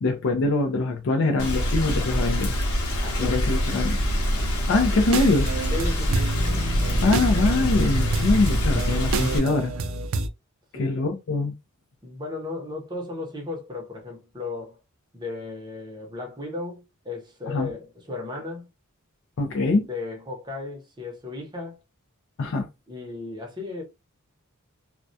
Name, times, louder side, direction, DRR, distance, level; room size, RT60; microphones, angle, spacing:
voice 1, 0.0-2.5 3.2-4.0 4.7-5.5 7.0-9.7 10.8-11.5 17.5-17.7 19.4-19.9 22.4-22.7, left 3 dB, 60° left, 0.4 m, -23 dB
Rain, 1.4-9.4, equal, 85° left, 0.8 m, -25 dB
voice 2, 3.0-3.4 5.7-6.3 10.7-11.0 12.0-14.8 15.1-18.7 19.9-21.8 22.9-23.8, left 3 dB, 20° right, 0.7 m, -35 dB
sound 1, 5.0-10.3, right 3 dB, 60° right, 0.3 m, -29 dB
2.2 x 2.1 x 2.6 m
head